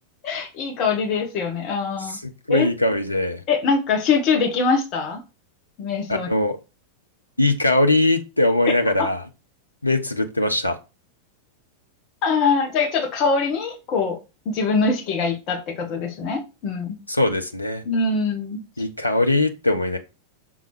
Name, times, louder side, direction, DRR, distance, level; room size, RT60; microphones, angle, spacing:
voice 1, 0.2-2.2 2.5-2.7 3.5-5.2 5.8-6.3 8.6-8.7 9.0-9.1 12.2-14.2 14.5-17.0 17.8-18.6, left 4 dB, 40° left, 4 dB, 1.8 m, -23 dB
voice 2, 2.5-3.4 6.1-6.6 7.4-9.2 9.8-10.8 17.1-17.8 18.8-20.0, left 2 dB, 85° left, 6 dB, 0.9 m, -21 dB
6.4 x 3.8 x 4.5 m, 0.28 s
figure-of-eight pair, 90°, 0 cm